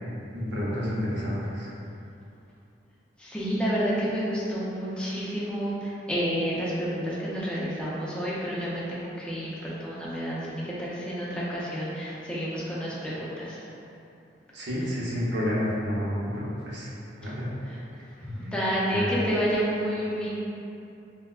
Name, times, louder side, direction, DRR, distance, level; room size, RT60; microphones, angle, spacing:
voice 1, 0.3-1.7 14.5-16.9 17.2-17.5 18.9-19.2, equal, 75° right, -6 dB, 0.7 m, -29 dB
voice 2, 3.2-13.7 17.2-17.3 17.6-17.8 18.2-20.3, equal, 5° left, -8 dB, 0.4 m, -30 dB
3.5 x 2.1 x 2.3 m, 2.7 s
head